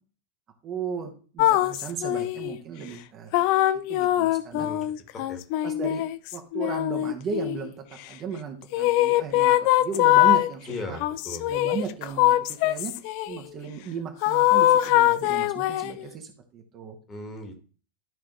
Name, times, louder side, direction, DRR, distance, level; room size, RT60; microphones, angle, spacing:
voice 1, 0.6-3.3 3.9-4.7 5.6-6.0 6.3-11.0 11.5-12.9 13.3-17.0, right 6 dB, 30° right, 3 dB, 1.4 m, -35 dB
sound 1, 1.4-2.6 3.3-7.7 8.7-10.5 11.0-13.4 14.2-16.0, left 15 dB, 45° left, 0.4 m, -22 dB
voice 2, 10.7-11.5 17.1-17.6, left 2 dB, 20° left, 4 dB, 1.9 m, -37 dB
12.5 x 4.9 x 3.1 m, 0.39 s
figure-of-eight pair, 90°, 0 cm